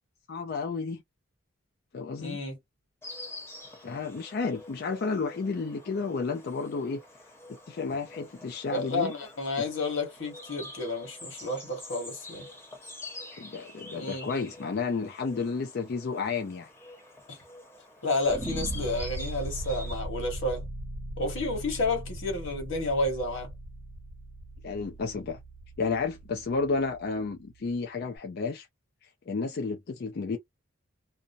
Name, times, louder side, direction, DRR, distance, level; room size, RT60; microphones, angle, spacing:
voice 1, 0.3-1.0 1.9-2.4 3.8-7.0 7.7-9.1 13.4-16.7 24.6-25.4 25.8-28.7 29.0-30.4, left 4 dB, 50° left, 0.4 m, -32 dB
voice 2, 2.2-2.6 8.7-12.5 13.9-14.3 17.3-17.4 18.0-20.6 21.2-23.5, left 2 dB, 65° left, 1.4 m, -31 dB
Insect, 3.0-20.0, left 2 dB, 10° left, 0.9 m, -47 dB
sound 1, 18.3-27.4, right 1 dB, 25° right, 0.9 m, -39 dB
2.6 x 2.0 x 2.6 m
head